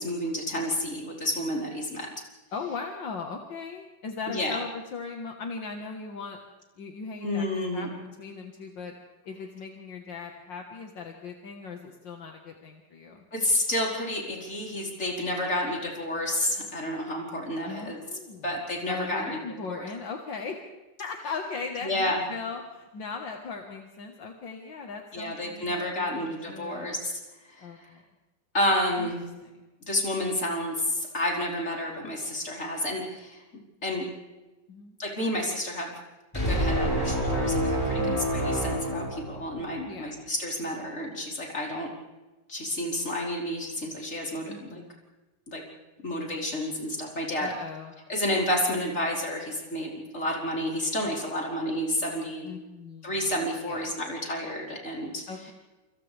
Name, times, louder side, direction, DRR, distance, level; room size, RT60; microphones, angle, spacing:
voice 1, 0.0-2.1 4.3-4.6 7.2-7.9 13.3-18.0 18.4-19.4 19.7-19.9 21.8-22.2 25.1-27.1 27.5-27.7 28.5-29.2 29.8-33.4 33.8-34.0 35.0-35.9 36.3-41.9 42.5-44.8 45.5-45.6 46.0-47.5 48.1-52.5 53.0-55.2, left 1 dB, 40° left, -3 dB, 5.2 m, -30 dB
voice 2, 2.5-6.4 6.8-8.9 9.3-13.2 17.6-20.6 21.0-26.9 27.6-28.0 29.0-29.1 29.4-29.5 34.7-35.0 38.0-38.3 39.9-40.2 44.5-45.0 47.4-48.0 52.4-53.1 53.7-53.9 55.3-55.5, left 4 dB, 75° left, 2 dB, 2.3 m, -38 dB
sound 1, 36.3-39.8, equal, 10° left, 5.9 m, -27 dB
28.0 x 27.5 x 3.5 m, 1.2 s
omnidirectional pair, 2.0 m